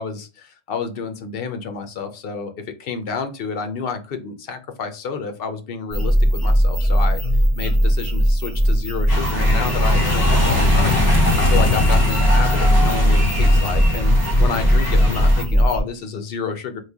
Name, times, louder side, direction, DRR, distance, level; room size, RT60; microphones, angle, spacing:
voice 1, 0.0-2.5 2.8-7.2 7.6-10.9 11.4-16.8, left 5 dB, 65° left, 7 dB, 0.8 m, -29 dB
sound 1, 5.9-15.8, equal, ahead, 0.7 m, -18 dB
sound 2, 9.1-15.4, left 2 dB, 25° left, 0.9 m, -22 dB
3.2 x 2.3 x 3.4 m, 0.32 s
omnidirectional pair, 1.1 m